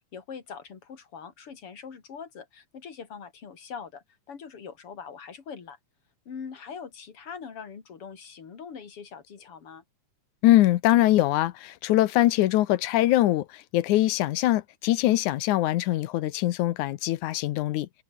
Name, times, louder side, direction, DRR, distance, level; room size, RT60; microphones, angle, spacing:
voice 1, 0.0-5.8 6.3-9.8, left 6 dB, 45° left, 3.5 m, -42 dB
voice 2, 10.4-17.9, left 15 dB, 75° left, 2.2 m, -23 dB
omnidirectional pair, 3.6 m